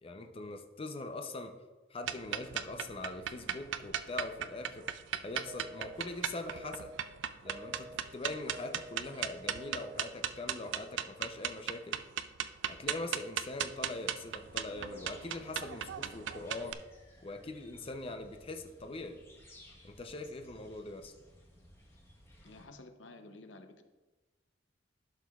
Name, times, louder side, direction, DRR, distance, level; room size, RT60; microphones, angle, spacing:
voice 1, 0.0-1.5 1.9-4.8 5.2-6.9 7.4-12.0 12.6-16.8 17.2-19.2 19.8-21.1, left 2 dB, 30° left, 5 dB, 0.6 m, -42 dB
sound 1, 2.0-16.7, right 9 dB, 75° right, 0.4 m, -37 dB
sound 2, 5.5-6.0 6.5-7.0 7.5-8.0 8.5-9.0 9.5-10.0, equal, 20° right, 0.5 m, -48 dB
sound 3, 14.2-22.6, left 1 dB, 15° left, 1.1 m, -59 dB
voice 2, 22.4-23.8, left 2 dB, 85° left, 7 dB, 0.7 m, -52 dB
11.5 x 6.5 x 2.4 m, 1.2 s
head